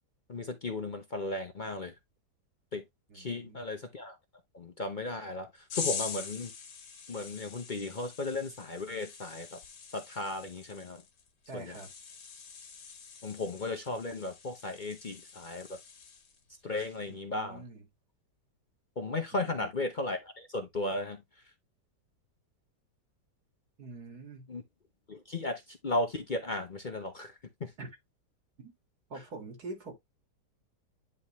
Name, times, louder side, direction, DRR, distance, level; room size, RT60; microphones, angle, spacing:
voice 1, 0.3-2.0 2.7-2.8 3.1-4.2 4.5-6.5 7.1-9.6 9.9-11.0 11.5-11.8 13.2-15.8 16.6-17.6 19.0-21.4 24.5-24.6 25.1-27.7, left 2 dB, 40° left, 0.7 m, -35 dB
voice 2, 3.1-3.6 11.5-11.9 17.1-17.8 19.3-19.7 23.8-24.5 27.8-27.9 28.6-28.7 29.1-29.9, right 3 dB, 60° right, 2.5 m, -45 dB
sound 1, 5.7-16.4 16.7-17.1, left 6 dB, 75° left, 2.1 m, -44 dB
10.0 x 3.4 x 3.0 m
omnidirectional pair, 1.8 m